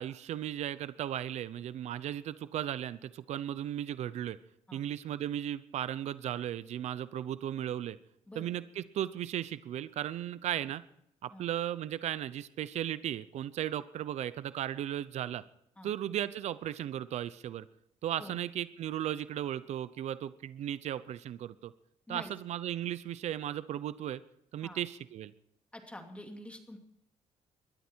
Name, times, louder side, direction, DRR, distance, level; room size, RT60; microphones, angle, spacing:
voice 1, 0.0-4.4 4.7-8.0 8.4-10.8 11.2-15.4 15.8-17.7 18.0-21.7 22.1-24.2 24.5-25.3, right 11 dB, 70° right, 15 dB, 0.7 m, -36 dB
voice 2, 25.7-26.8, left 1 dB, 10° left, 4 dB, 2.6 m, -47 dB
20.0 x 13.0 x 4.5 m, 0.76 s
cardioid pair, 105°, 12 cm